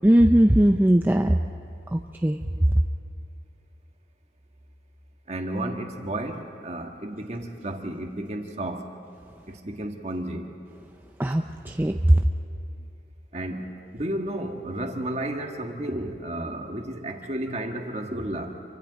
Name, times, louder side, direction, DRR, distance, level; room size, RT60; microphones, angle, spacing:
voice 1, 0.0-1.4 1.9-2.4 11.2-12.0, right 1 dB, 10° right, 4 dB, 0.4 m, -19 dB
voice 2, 5.3-9.0 9.5-10.5 13.3-18.6, right 1 dB, 35° right, 3 dB, 1.6 m, -32 dB
28.0 x 24.0 x 4.1 m, 2.5 s
head